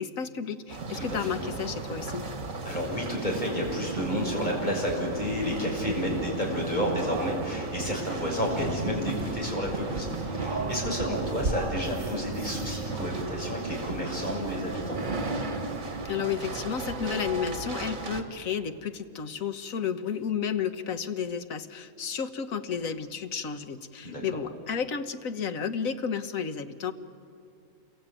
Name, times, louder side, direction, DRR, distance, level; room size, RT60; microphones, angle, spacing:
voice 1, 0.0-2.3 16.0-26.9, left 7 dB, 85° left, 9 dB, 1.5 m, -32 dB
sound 1, 0.7-18.2, right 3 dB, 90° right, 2.3 m, -35 dB
voice 2, 0.9-1.3 2.6-15.0 24.0-24.2, equal, 35° left, -2 dB, 6.6 m, -30 dB
sound 2, 3.0-4.6 5.0-7.7 10.1-14.2 14.6-17.7, right 2 dB, 40° right, 1.7 m, -41 dB
28.0 x 22.5 x 9.0 m, 2.5 s
omnidirectional pair, 1.4 m